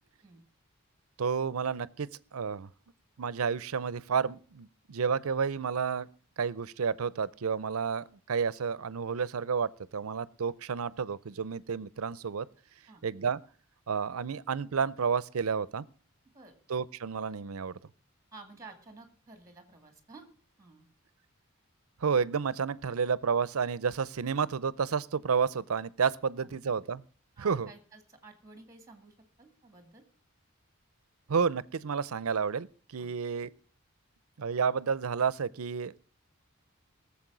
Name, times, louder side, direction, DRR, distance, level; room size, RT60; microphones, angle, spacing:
voice 1, 1.2-2.7 3.2-6.1 6.4-12.5 13.0-13.4 13.9-15.9 16.7-17.7 22.0-27.0 27.4-27.7 31.3-32.7 32.9-33.5 34.4-35.9, right 6 dB, 85° right, 0.6 m, -30 dB
voice 2, 18.3-20.3 20.6-20.9 26.4-26.5 27.4-30.0 33.0-33.1, right 3 dB, 15° right, 2.1 m, -52 dB
18.5 x 7.3 x 6.1 m
head